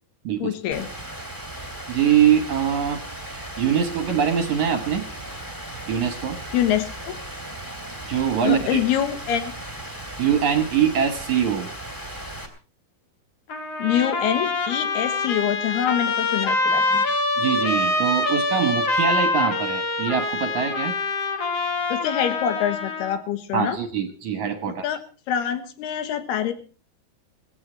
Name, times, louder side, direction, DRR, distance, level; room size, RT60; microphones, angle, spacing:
voice 1, 0.4-0.9 6.5-7.2 8.4-9.5 13.8-17.0 21.9-23.8 24.8-25.0 25.3-26.5, left 10 dB, 80° left, 9 dB, 3.4 m, -25 dB
Rain, 0.7-12.5, right 1 dB, 5° left, 1.8 m, -36 dB
voice 2, 1.9-5.1 5.9-6.4 8.0-8.8 10.2-11.7 17.4-21.0 23.5-24.9, right 8 dB, 65° right, 8 dB, 2.1 m, -23 dB
Trumpet, 13.5-23.2, left 2 dB, 50° left, 2.4 m, -25 dB
18.0 x 15.0 x 4.4 m, 0.37 s
omnidirectional pair, 4.6 m